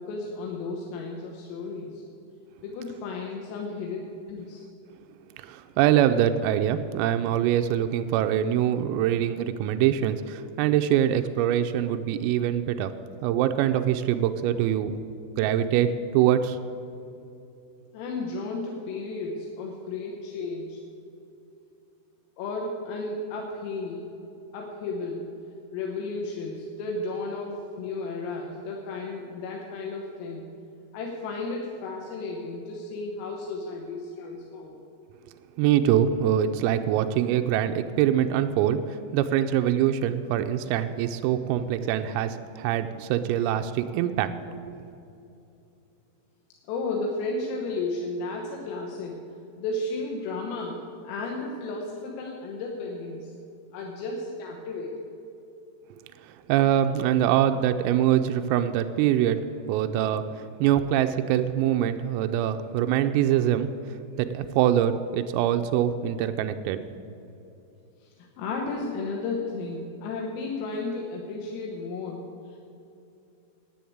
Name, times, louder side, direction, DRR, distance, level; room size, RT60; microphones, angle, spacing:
voice 1, 0.0-2.0 2.6-4.0 4.3-4.7 17.9-20.8 22.4-24.1 24.5-25.3 25.7-30.4 30.9-34.8 46.7-49.2 49.6-53.3 53.7-55.1 68.0-72.6, left 3 dB, 85° left, 0 dB, 3.8 m, -33 dB
voice 2, 5.4-12.9 13.2-15.0 15.4-16.6 35.6-44.3 44.7-44.8 56.2-59.4 59.7-63.7 64.2-66.8, right 10 dB, 90° right, 8 dB, 3.3 m, -24 dB
10.5 x 9.3 x 8.5 m, 2.8 s
omnidirectional pair, 5.9 m